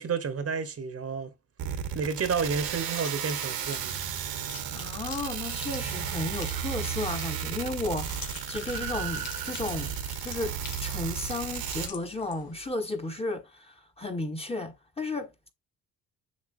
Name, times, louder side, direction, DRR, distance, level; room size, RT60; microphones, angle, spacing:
voice 1, 0.0-1.3 1.9-3.9, right 5 dB, 40° right, 1.2 m, -30 dB
sound 1, 1.6-11.9, right 9 dB, 75° right, 1.5 m, -34 dB
sound 2, 2.8-12.7, left 7 dB, 85° left, 1.9 m, -46 dB
voice 2, 4.7-15.5, left 2 dB, 15° left, 1.4 m, -34 dB
7.4 x 5.6 x 2.7 m
cardioid pair, 90°, 36 cm